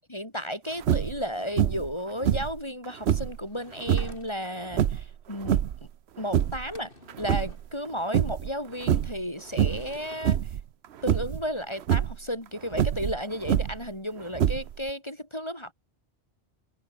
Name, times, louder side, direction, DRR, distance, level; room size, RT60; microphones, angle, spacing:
voice 1, 0.1-5.6 6.2-10.4 11.0-15.7, equal, 25° left, 5.0 m, -33 dB
sound 1, 0.8-1.2 1.6-1.9 2.2-3.4 3.8-4.2 4.7-5.8 6.2-6.7 7.1-7.9 8.1-8.5 8.8-9.2 9.6-9.9 10.2-10.6 11.1-11.4 11.8-12.2 12.7-13.9 14.3-14.9, right 10 dB, 70° right, 1.0 m, -25 dB
Sliding door / Wood, 3.4-4.7 6.2-6.3 6.5-7.6 9.4-10.4, left 1 dB, 50° left, 6.7 m, -50 dB
omnidirectional pair, 1.2 m